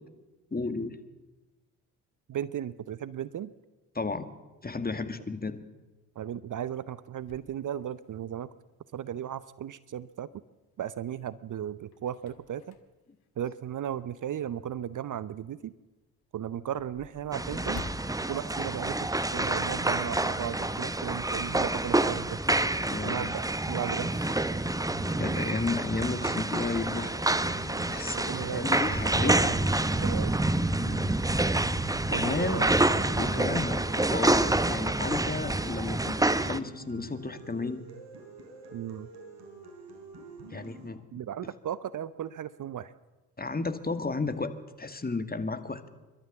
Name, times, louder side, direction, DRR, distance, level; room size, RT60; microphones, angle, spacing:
voice 1, 0.5-1.0 4.0-4.3 4.6-5.6 22.8-23.4 25.2-27.2 27.5-29.6 30.8-31.1 32.1-32.7 33.2-37.8 40.5-41.0 43.4-45.9, left 3 dB, 20° left, 10 dB, 2.0 m, -33 dB
voice 2, 2.3-3.5 6.2-8.5 8.9-10.4 10.8-12.7 13.4-15.7 16.3-17.8 18.3-22.4 23.0-24.4 28.1-28.7 29.2-29.4 30.0-30.4 32.1-32.7 33.3-33.5 38.7-39.1 41.1-42.9, right 10 dB, 45° right, 17 dB, 0.8 m, -36 dB
sound 1, 7.2-8.5 9.1-9.2 10.6-11.2 11.6-14.3 14.7-14.8 15.2-15.3 15.6-15.7 15.9-19.7 20.0-20.2 20.5-21.1, left 7 dB, 55° left, 2.2 m, -50 dB
sound 2, 17.3-36.6, right 2 dB, 10° right, 0.9 m, -28 dB
sound 3, 24.9-40.9, right 3 dB, 60° right, 4.8 m, -47 dB
28.5 x 12.5 x 7.4 m, 1.2 s
hypercardioid pair, 50°, 43 cm